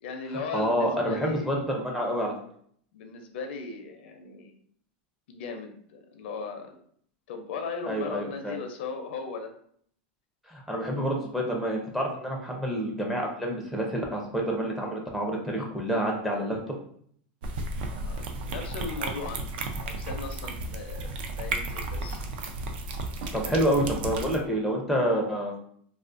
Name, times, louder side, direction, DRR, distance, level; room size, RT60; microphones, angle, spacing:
voice 1, 0.0-1.5 2.9-4.5 5.3-6.8 7.3-9.5 18.0-19.5 19.8-22.2, left 4 dB, 75° left, 5 dB, 0.5 m, -37 dB
voice 2, 0.5-2.3 7.9-8.5 10.5-16.6 23.3-25.6, equal, 5° right, -1 dB, 0.5 m, -28 dB
sound 1, 17.4-24.4, right 2 dB, 65° right, 0.4 m, -33 dB
2.4 x 2.4 x 2.4 m, 0.62 s
supercardioid pair, 145°, 6 cm